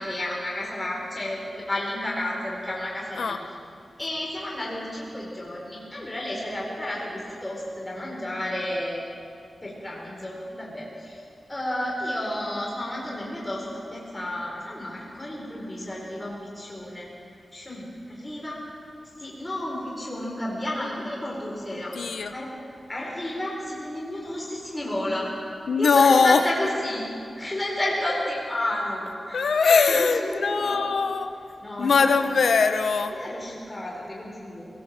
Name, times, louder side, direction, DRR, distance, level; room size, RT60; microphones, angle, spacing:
voice 1, 0.0-3.4 4.0-9.0 9.6-11.2 11.5-13.6 13.9-17.1 17.5-18.6 19.2-22.5 22.9-25.3 25.8-27.1 27.4-29.5 29.9-30.9 31.6-32.1 33.1-34.7, left 1 dB, 15° left, -3 dB, 4.1 m, -31 dB
voice 2, 21.9-22.3 25.7-26.4 29.3-31.3 31.8-33.2, left 5 dB, 75° left, 8 dB, 1.2 m, -21 dB
21.5 x 18.0 x 7.6 m, 2.5 s
wide cardioid pair, 150°, 0 cm